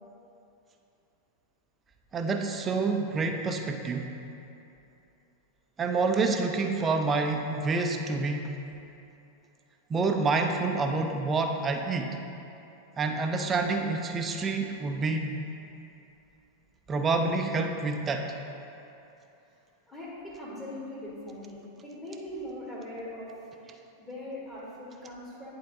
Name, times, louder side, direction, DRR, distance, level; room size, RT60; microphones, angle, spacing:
voice 1, 2.1-4.1 5.8-8.5 9.9-12.2 13.0-15.4 16.9-18.3, right 3 dB, 20° right, 4 dB, 0.4 m, -28 dB
voice 2, 19.9-23.5 24.0-25.5, left 1 dB, 15° left, -9 dB, 1.5 m, -41 dB
10.5 x 3.6 x 3.9 m, 2.8 s
figure-of-eight pair, 90°, 0 cm